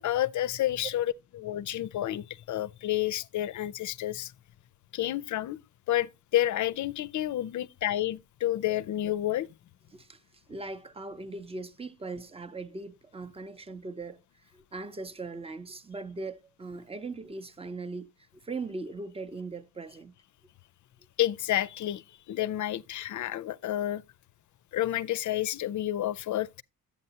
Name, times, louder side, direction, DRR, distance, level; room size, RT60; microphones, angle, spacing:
voice 1, 0.0-4.3 4.9-5.6 5.9-9.5 21.2-24.0 24.7-26.5, left 13 dB, 60° left, 0.5 m, -30 dB
voice 2, 9.9-20.2, right 3 dB, 15° right, 0.6 m, -40 dB
11.0 x 8.3 x 2.8 m
wide cardioid pair, 130°, 35 cm